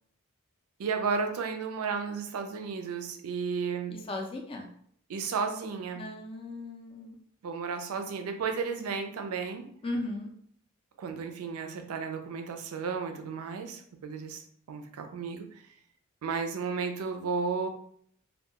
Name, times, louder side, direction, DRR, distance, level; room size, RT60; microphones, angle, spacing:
voice 1, 0.8-4.0 5.1-6.1 7.4-9.7 11.0-15.6 16.2-17.7, right 5 dB, 85° right, 6 dB, 0.4 m, -33 dB
voice 2, 3.9-4.7 6.0-7.2 9.8-10.3, left 2 dB, 25° left, 1 dB, 0.4 m, -36 dB
2.2 x 2.2 x 2.7 m, 0.63 s
head